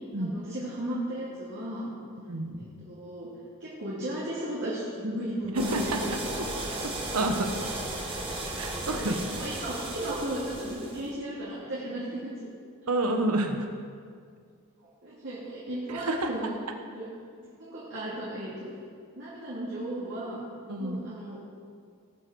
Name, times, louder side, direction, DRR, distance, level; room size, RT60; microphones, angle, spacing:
voice 1, 0.2-1.9 2.6-3.3 3.6-6.4 8.8-12.5 14.8-16.5 16.9-17.1 17.4-18.7 19.1-20.4 20.8-21.4, right 1 dB, 55° right, -8 dB, 2.7 m, -35 dB
voice 2, 2.2-2.6 5.5-6.0 7.1-7.5 8.6-9.1 12.9-13.7 15.9-16.3 20.7-21.1, right 2 dB, 80° right, 5 dB, 1.2 m, -28 dB
sound 1, 5.6-11.1, right 1 dB, 25° right, 2.1 m, -35 dB
18.5 x 6.2 x 6.3 m, 2.2 s
head